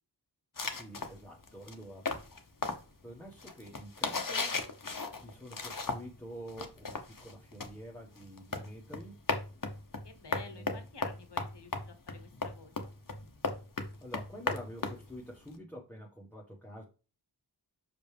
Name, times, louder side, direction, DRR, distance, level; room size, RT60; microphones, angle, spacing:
sound 1, 0.6-6.2 6.5-15.5, left 3 dB, 50° left, 1.0 m, -36 dB
voice 1, 0.7-2.0 3.0-4.5 5.2-9.2 10.4-10.8 14.0-16.8, equal, 5° left, -3 dB, 1.3 m, -47 dB
voice 2, 10.0-12.9, left 4 dB, 75° left, 8 dB, 1.2 m, -52 dB
6.0 x 5.1 x 3.4 m, 0.34 s
wide cardioid pair, 50°, 42 cm